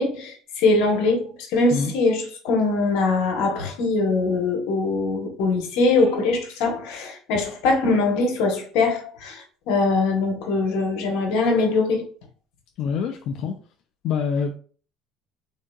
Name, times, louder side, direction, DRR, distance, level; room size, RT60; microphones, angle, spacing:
voice 1, 0.0-12.0, left 3 dB, 80° left, 1.0 m, -22 dB
voice 2, 12.8-13.5 14.0-14.6, left 6 dB, 60° left, 0.3 m, -25 dB
3.5 x 2.7 x 2.3 m
cardioid pair, 130°, 0 cm